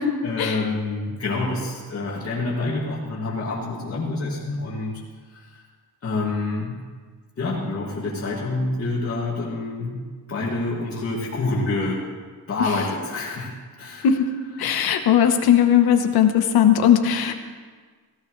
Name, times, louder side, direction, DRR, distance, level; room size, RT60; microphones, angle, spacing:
voice 1, 0.2-5.0 5.3-5.6 6.0-6.8 7.4-10.0 10.3-12.0 12.5-13.5 13.8-14.1, left 2 dB, 40° left, -7 dB, 2.4 m, -27 dB
voice 2, 14.6-17.4, left 9 dB, 80° left, 6 dB, 1.2 m, -18 dB
17.0 x 17.0 x 3.3 m, 1.5 s
wide cardioid pair, 175°, 37 cm